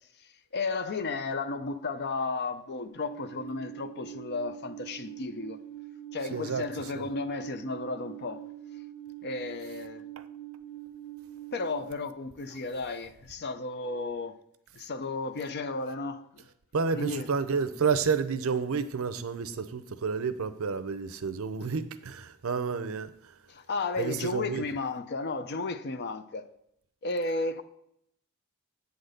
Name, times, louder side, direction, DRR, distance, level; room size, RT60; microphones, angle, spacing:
voice 1, 0.5-5.6 6.1-8.4 9.2-10.0 11.5-14.4 14.7-16.4 16.9-17.3 23.5-26.4 27.0-27.6, left 3 dB, 50° left, 0.6 m, -33 dB
Alarm, 2.9-11.8, right 13 dB, 90° left, 1.4 m, -44 dB
voice 2, 6.3-6.6 6.9-7.1 10.2-10.3 16.7-23.3 24.0-24.7, right 5 dB, 70° right, 0.6 m, -30 dB
8.2 x 4.0 x 6.5 m
head